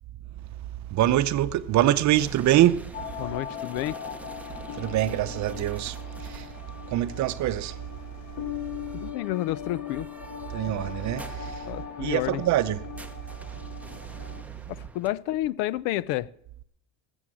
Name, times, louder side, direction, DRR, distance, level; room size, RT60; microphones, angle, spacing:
voice 1, 0.9-2.8 4.8-5.9 6.3-6.4 6.9-7.7 10.5-11.5 12.0-12.8, right 13 dB, 45° right, 0.8 m, -24 dB
sound 1, 2.1-15.1, right 2 dB, 5° right, 0.9 m, -48 dB
sound 2, 2.9-14.4, left 9 dB, 45° left, 2.0 m, -39 dB
voice 2, 3.2-4.0 8.9-10.1 11.7-12.4 14.7-16.3, left 15 dB, 70° left, 0.7 m, -30 dB
20.0 x 8.0 x 6.3 m
cardioid pair, 130°, 40 cm